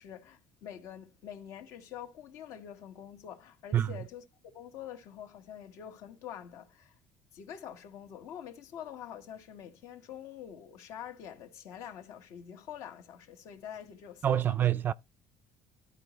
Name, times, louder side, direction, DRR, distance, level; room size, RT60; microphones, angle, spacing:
voice 1, 0.0-7.0 7.3-14.6, left 9 dB, 70° left, 1.7 m, -46 dB
voice 2, 14.2-14.9, right 11 dB, 35° right, 0.4 m, -26 dB
12.5 x 4.7 x 3.1 m
cardioid pair, 135°, 6 cm